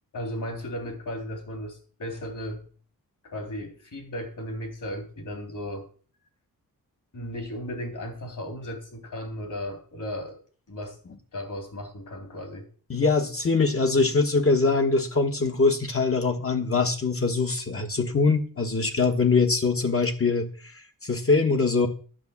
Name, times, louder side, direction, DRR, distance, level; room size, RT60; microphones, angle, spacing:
voice 1, 0.1-2.6 3.2-5.9 7.1-10.4 10.7-11.0 11.3-12.7, equal, 55° left, 4 dB, 3.5 m, -35 dB
voice 2, 12.9-21.9, left 4 dB, 40° left, 4 dB, 1.3 m, -23 dB
10.5 x 7.2 x 7.2 m, 0.42 s
wide cardioid pair, 125°, 36 cm